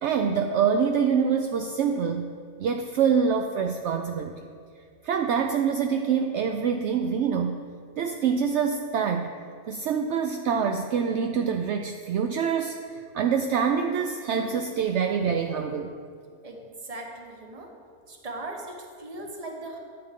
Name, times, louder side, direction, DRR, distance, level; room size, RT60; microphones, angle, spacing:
voice 1, 0.0-2.3 2.6-4.3 5.0-7.6 8.0-9.3 9.7-15.9, right 6 dB, 70° right, 4 dB, 0.7 m, -25 dB
voice 2, 16.4-17.7 18.1-19.8, right 2 dB, 30° right, 2 dB, 1.0 m, -39 dB
12.5 x 7.8 x 3.6 m, 2.2 s
omnidirectional pair, 1.6 m